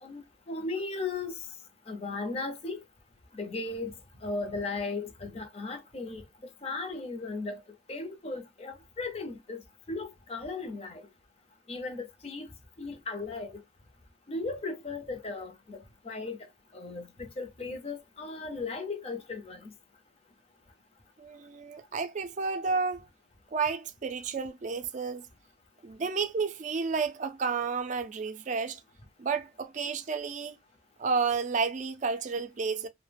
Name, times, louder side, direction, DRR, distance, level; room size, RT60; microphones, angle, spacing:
voice 1, 0.0-1.4 1.9-2.8 3.3-6.2 6.6-7.6 7.9-9.6 9.9-11.0 11.7-12.5 12.8-13.6 14.3-16.5 16.7-19.7, left 3 dB, 35° left, 0.5 m, -36 dB
voice 2, 21.2-23.0 23.5-25.3 25.8-28.8 29.2-30.6 31.0-32.9, right 5 dB, 40° right, 0.4 m, -31 dB
2.3 x 2.0 x 3.3 m
head